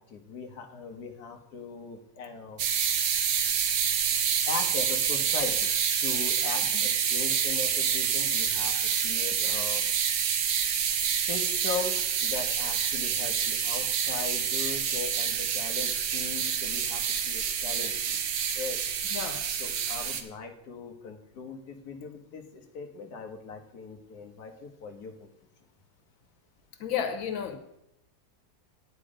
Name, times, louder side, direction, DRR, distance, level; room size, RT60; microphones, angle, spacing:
voice 1, 0.0-2.6 4.5-5.7 6.0-8.8 9.0-9.8 11.2-18.2 18.6-18.8 19.6-25.3, left 5 dB, 55° left, 3 dB, 1.6 m, -39 dB
sound 1, 2.6-20.2, right 8 dB, 75° right, 1.6 m, -27 dB
voice 2, 19.1-19.5 26.8-27.6, left 8 dB, 90° left, 7 dB, 1.9 m, -32 dB
9.8 x 9.0 x 5.0 m, 0.82 s
omnidirectional pair, 2.1 m